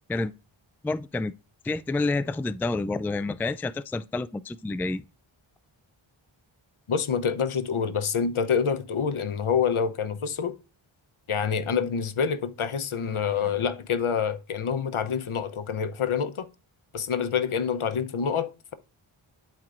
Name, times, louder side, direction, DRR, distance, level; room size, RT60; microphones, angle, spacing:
voice 1, 0.8-1.3 1.6-5.0, left 3 dB, 5° left, 0.3 m, -28 dB
voice 2, 6.9-10.5 11.3-16.5 16.9-18.7, left 6 dB, 75° left, 0.9 m, -27 dB
11.5 x 4.5 x 2.5 m
cardioid pair, 45°, 50 cm